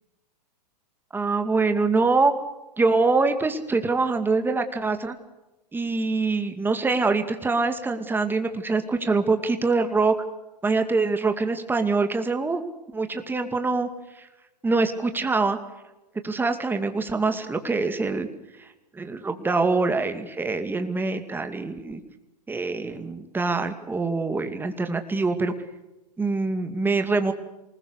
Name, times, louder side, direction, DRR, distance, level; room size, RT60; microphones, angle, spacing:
voice 1, 1.1-2.3 2.8-5.2 5.7-10.1 10.6-12.6 12.9-13.9 14.2-14.3 14.6-15.6 16.2-18.3 18.6-18.7 18.9-22.0 22.5-25.5 26.2-27.3, right 3 dB, 10° right, 7 dB, 2.4 m, -24 dB
27.5 x 20.5 x 6.6 m, 0.99 s
hypercardioid pair, 120°, 21 cm